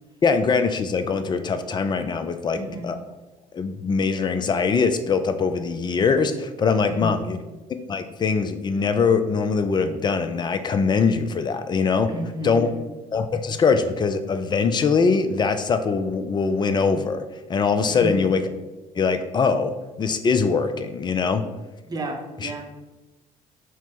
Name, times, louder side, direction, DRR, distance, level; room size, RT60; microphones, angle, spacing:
voice 1, 0.2-2.6 2.8-3.0 3.5-7.4 7.9-12.1 12.4-12.8 13.1-17.2 17.5-18.4 19.0-19.7 20.0-21.4 22.4-22.5, left 5 dB, 25° left, 9 dB, 0.4 m, -22 dB
voice 2, 2.5-2.9 6.8-7.3 12.1-12.8 17.8-18.4 21.8-22.6, right 1 dB, 20° right, 2 dB, 0.7 m, -32 dB
4.3 x 2.0 x 4.5 m, 1.1 s
figure-of-eight pair, 50°, 18 cm